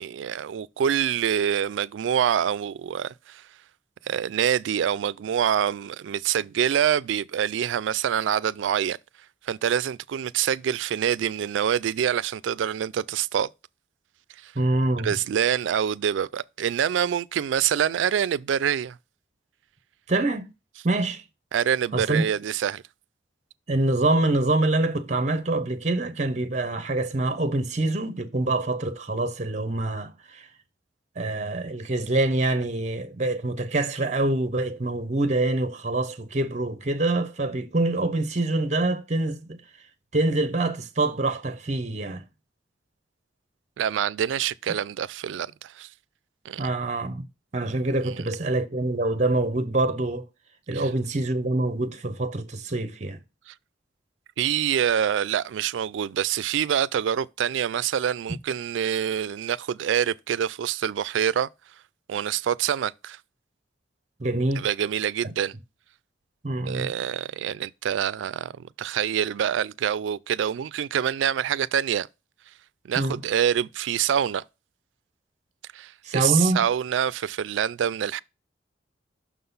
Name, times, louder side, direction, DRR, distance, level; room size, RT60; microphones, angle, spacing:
voice 1, 0.0-3.4 4.0-9.0 9.4-13.5 14.4-14.5 15.0-19.0 21.5-22.8 43.8-45.9 46.5-46.7 48.0-48.2 50.7-50.8 53.5-53.6 54.4-61.5 62.1-63.2 64.6-65.5 66.6-72.1 72.8-74.4 75.7-78.2, right 9 dB, 85° right, 0.3 m, -26 dB
voice 2, 14.6-15.1 20.1-20.5 20.8-21.2 21.9-22.2 23.7-30.5 31.2-39.6 40.1-42.2 46.6-47.3 47.5-50.3 50.7-53.2 64.2-64.7 66.4-66.9 73.0-73.2 76.0-76.7, right 2 dB, 40° right, 0.8 m, -25 dB
6.1 x 3.8 x 5.4 m
head